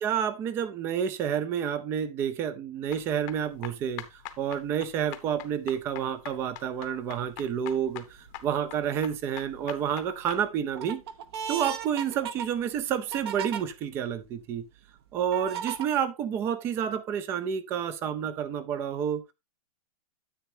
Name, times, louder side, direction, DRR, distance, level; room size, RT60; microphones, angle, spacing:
voice 1, 0.0-11.0 11.5-14.6 15.1-19.3, right 8 dB, 15° right, 0.4 m, -29 dB
sound 1, 2.9-10.4, left 14 dB, 25° left, 0.8 m, -44 dB
sound 2, 7.1-7.5 8.1-8.7 9.2-9.9 10.3-13.6 14.2-14.3 15.3-15.8, right 8 dB, 45° right, 0.9 m, -36 dB
10.0 x 8.0 x 2.7 m
hypercardioid pair, 170°, 19 cm